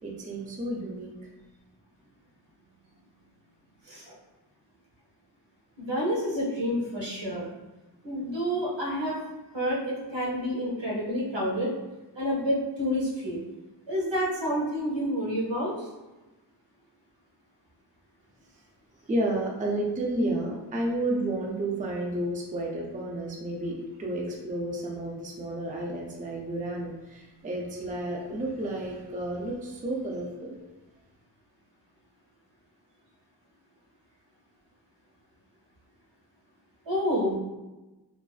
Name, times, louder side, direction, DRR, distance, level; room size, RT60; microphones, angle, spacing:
voice 1, 0.0-1.1 19.1-30.6, right 1 dB, 20° right, -2 dB, 0.4 m, -31 dB
voice 2, 5.8-7.5 8.0-9.2 9.5-11.7 12.2-13.4 13.9-15.7 36.9-37.4, equal, 85° right, -4 dB, 0.9 m, -29 dB
2.4 x 2.3 x 2.3 m, 1.1 s
wide cardioid pair, 105°, 43 cm